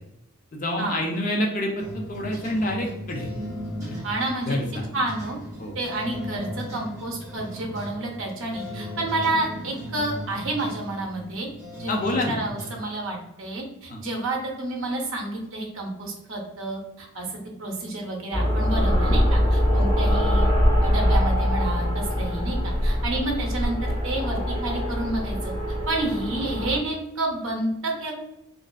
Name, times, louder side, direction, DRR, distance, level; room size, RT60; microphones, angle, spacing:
voice 1, 0.5-3.3 3.8-4.0 4.4-4.8 5.6-5.8 11.9-12.4 13.9-14.0 19.8-19.9, left 1 dB, 35° left, 1 dB, 0.3 m, -27 dB
sound 1, 1.8-12.8, equal, 15° right, 0.6 m, -37 dB
voice 2, 4.0-4.6 4.9-5.4 5.7-11.5 11.8-20.5 20.8-25.5 25.9-28.1, right 2 dB, 60° right, 0 dB, 0.6 m, -30 dB
sound 2, 18.3-26.8, equal, 20° left, 1.0 m, -23 dB
2.4 x 2.3 x 2.2 m, 0.86 s
head